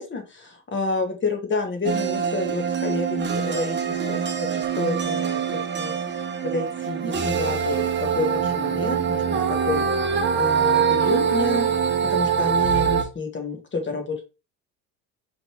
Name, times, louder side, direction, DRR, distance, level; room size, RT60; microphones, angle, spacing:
voice 1, 0.0-5.2 5.5-5.9 6.4-9.2 9.5-11.7 12.1-14.3, left 3 dB, 30° left, 4 dB, 1.6 m, -29 dB
sound 1, 1.8-13.0, right 7 dB, 30° right, 1.0 m, -24 dB
5.1 x 3.3 x 3.1 m, 0.29 s
supercardioid pair, 90°, 38 cm